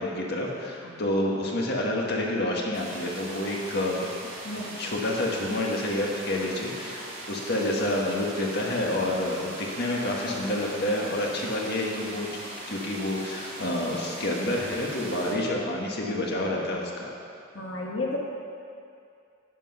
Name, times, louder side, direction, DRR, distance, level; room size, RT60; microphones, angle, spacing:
voice 1, 0.0-4.1 4.5-12.3 12.7-17.1, left 1 dB, 55° left, -1 dB, 1.6 m, -28 dB
sound 1, 2.7-15.3, right 1 dB, 35° right, 2.7 m, -40 dB
voice 2, 4.4-4.7 6.4-6.6 17.5-18.2, left 2 dB, 75° left, -2 dB, 1.5 m, -33 dB
12.0 x 7.5 x 5.6 m, 2.5 s
head